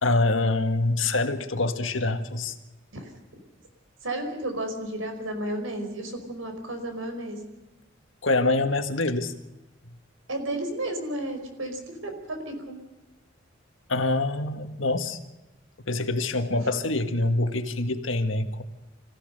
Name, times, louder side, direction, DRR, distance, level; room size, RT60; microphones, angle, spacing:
voice 1, 0.0-2.6 8.2-9.3 13.9-15.2 15.9-18.6, left 2 dB, 70° left, 7 dB, 1.8 m, -25 dB
voice 2, 4.0-7.4 10.3-12.8 16.5-16.6, right 1 dB, 85° right, 5 dB, 5.0 m, -32 dB
25.5 x 16.0 x 6.7 m, 1.1 s
head